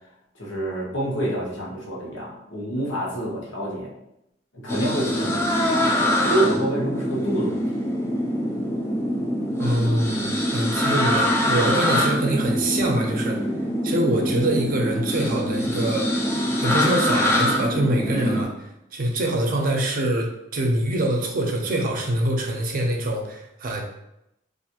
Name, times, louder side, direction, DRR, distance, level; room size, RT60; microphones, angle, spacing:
voice 1, 0.4-3.9 4.6-7.8 18.1-18.4, right 1 dB, 85° left, -5 dB, 1.0 m, -27 dB
sound 1, 4.7-18.4, equal, 15° left, 0.4 m, -24 dB
voice 2, 9.6-13.4 13.8-18.5 18.9-23.8, right 1 dB, 50° right, 1 dB, 0.5 m, -24 dB
2.5 x 2.5 x 2.8 m, 0.83 s
head